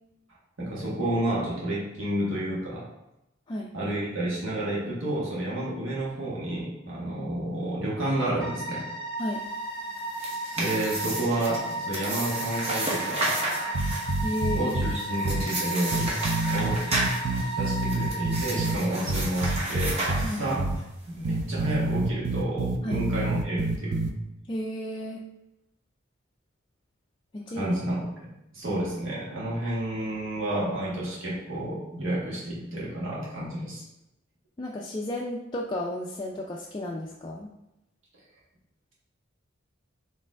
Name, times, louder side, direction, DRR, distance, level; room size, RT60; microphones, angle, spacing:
voice 1, 0.6-2.8 3.7-8.8 10.6-13.4 14.5-16.1 16.5-16.8 17.6-20.7 21.1-24.0 27.5-33.8, right 1 dB, 75° right, -6 dB, 1.6 m, -30 dB
sound 1, 8.4-18.8, right 1 dB, 5° left, 1.3 m, -35 dB
sound 2, 9.9-20.8, right 1 dB, 30° right, 1.1 m, -33 dB
sound 3, 13.7-14.9 15.2-15.4 15.9-18.8 19.1-20.3 20.6-20.8 21.2-24.1, right 2 dB, 60° right, 0.5 m, -27 dB
voice 2, 14.2-14.8 20.2-20.4 22.8-23.1 24.5-25.2 27.3-27.8 34.6-37.5, left 1 dB, 25° left, -2 dB, 0.3 m, -33 dB
4.4 x 3.2 x 3.7 m, 0.89 s
head